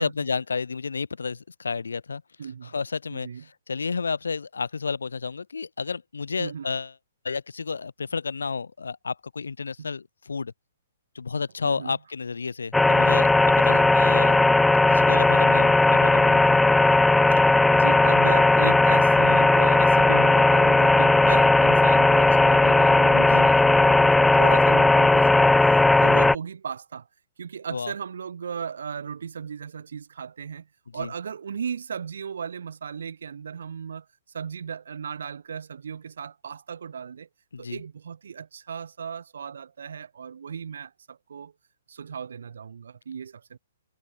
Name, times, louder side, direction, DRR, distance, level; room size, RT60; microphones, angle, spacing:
voice 1, 0.0-2.2 2.6-3.3 3.7-6.9 7.2-10.5 11.1-14.4 14.9-16.6 23.1-23.5 27.7-27.9 30.9-31.1 37.5-37.8, left 5 dB, 85° left, 2.9 m, -31 dB
voice 2, 2.4-2.7 3.1-3.4 6.4-6.7 9.8-9.9 11.6-12.0 13.7-14.0 15.4-15.6 17.3-27.1 27.4-30.7 30.9-34.1 34.3-37.3 37.6-41.5 41.9-43.6, right 7 dB, 70° right, 1.1 m, -36 dB
sound 1, 12.7-26.4, left 2 dB, 5° left, 0.3 m, -17 dB
hypercardioid pair, 130°, 0 cm